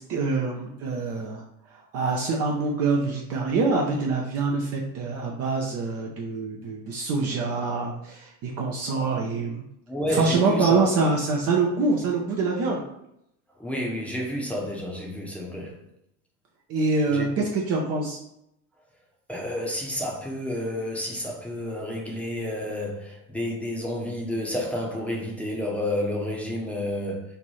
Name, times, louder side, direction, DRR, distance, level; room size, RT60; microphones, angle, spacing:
voice 1, 0.0-1.4 1.7-9.6 10.1-12.8 16.7-18.2, right 3 dB, 30° right, 0 dB, 0.5 m, -25 dB
voice 2, 9.9-10.8 13.6-15.8 17.1-17.3 19.3-27.2, left 1 dB, 5° left, -3 dB, 0.8 m, -30 dB
3.2 x 2.6 x 4.1 m, 0.79 s
figure-of-eight pair, 70°, 47 cm